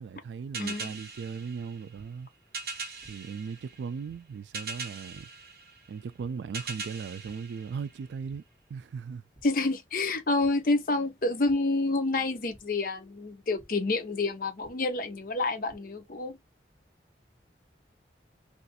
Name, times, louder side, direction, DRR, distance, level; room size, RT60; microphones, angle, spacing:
voice 1, 0.0-2.3 3.1-5.3 5.9-8.4 8.7-9.2, right 6 dB, 80° right, 0.3 m, -38 dB
sound 1, 0.5-8.4, right 4 dB, 55° right, 0.8 m, -42 dB
voice 2, 0.6-0.9 9.4-16.4, left 2 dB, 50° left, 0.5 m, -28 dB
sound 2, 1.9-2.0 3.0-3.1 4.1-4.2 5.1-5.2 6.2-6.3 7.2-7.3 7.8-8.0 8.3-8.4 9.3-9.4 10.4-10.5 11.5-11.6 12.5-12.6 13.6-13.7 14.6-14.7 15.4-15.8, right 1 dB, 10° left, 1.2 m, -55 dB
2.5 x 2.4 x 4.0 m
head